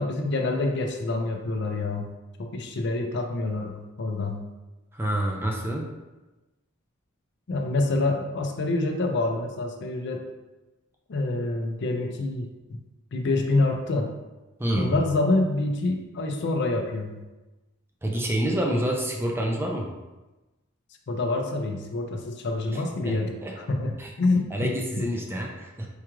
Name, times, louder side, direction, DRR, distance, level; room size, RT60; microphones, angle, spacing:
voice 1, 0.0-2.1 2.4-4.4 7.5-10.2 11.1-12.8 13.1-14.1 14.8-17.2 21.1-23.4 23.7-25.1, left 2 dB, 55° left, 3 dB, 0.4 m, -27 dB
voice 2, 4.9-5.9 14.6-14.9 18.0-19.9 22.7-23.2 23.4-23.5 24.0-24.1 24.5-25.9, right 1 dB, 10° right, -1 dB, 0.4 m, -27 dB
4.6 x 2.3 x 3.0 m, 1.1 s
head